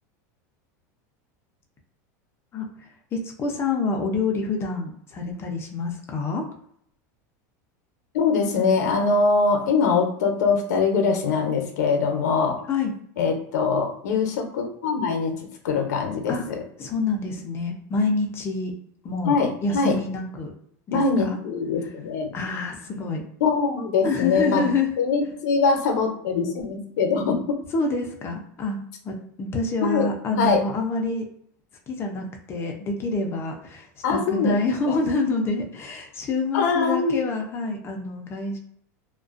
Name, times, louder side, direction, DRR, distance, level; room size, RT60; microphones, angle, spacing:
voice 1, 2.5-6.5 12.7-12.9 16.3-16.5 16.8-18.7 19.0-20.5 20.9-21.4 22.3-23.2 24.0-24.9 27.7-31.3 31.9-38.6, left 3 dB, 25° left, 2 dB, 0.5 m, -27 dB
voice 2, 8.1-12.6 13.2-16.3 19.2-20.0 20.9-22.3 23.4-24.7 25.0-27.5 29.8-30.1 30.4-30.6 34.0-34.6 34.9-35.0 36.5-37.2, left 4 dB, 90° left, 4 dB, 0.6 m, -23 dB
2.4 x 2.2 x 2.4 m, 0.67 s
supercardioid pair, 135°, 9 cm